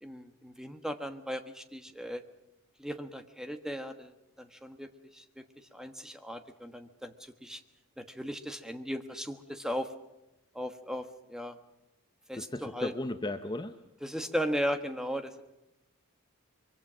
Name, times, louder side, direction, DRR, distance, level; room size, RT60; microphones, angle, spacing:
voice 1, 0.0-2.2 2.8-5.4 5.7-7.6 8.0-9.9 10.5-11.6 12.3-12.9 14.0-15.4, equal, 5° right, 8 dB, 1.3 m, -37 dB
voice 2, 12.3-13.8, left 1 dB, 20° left, 8 dB, 0.8 m, -36 dB
24.0 x 23.5 x 6.2 m, 0.96 s
head